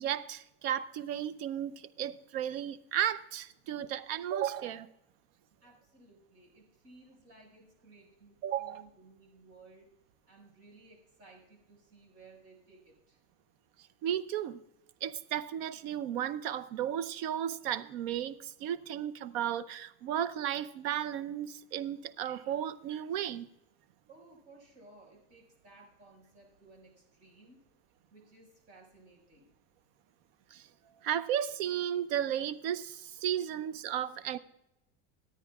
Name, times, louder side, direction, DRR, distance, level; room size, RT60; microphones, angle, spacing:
voice 1, 0.0-4.9 8.4-8.8 14.0-14.6 15.0-23.5 30.5-30.7 31.0-34.4, right 10 dB, 65° right, 0.7 m, -34 dB
voice 2, 3.6-3.9 5.6-9.9 10.3-13.2 24.1-27.6 28.1-29.5, right 3 dB, 50° right, 5.3 m, -58 dB
24.0 x 9.3 x 2.4 m
supercardioid pair, 150°, 33 cm